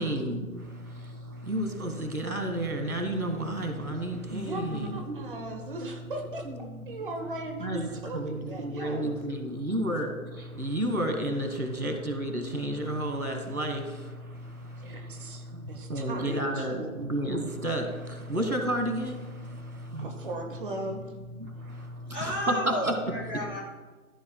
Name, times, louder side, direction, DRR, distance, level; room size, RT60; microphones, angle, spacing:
voice 1, 0.0-5.2 6.4-6.6 6.9-7.0 7.6-20.3 21.2-22.9 23.3-23.4, right 1 dB, 75° right, 5 dB, 1.6 m, -32 dB
voice 2, 3.6-3.9 4.2-6.5 6.9-9.1 14.8-16.9 20.0-21.0, right 2 dB, 35° right, 3 dB, 0.9 m, -38 dB
voice 3, 22.1-23.6, left 1 dB, 10° left, -9 dB, 0.8 m, -33 dB
13.5 x 7.0 x 2.2 m, 1.3 s
figure-of-eight pair, 145°, 43 cm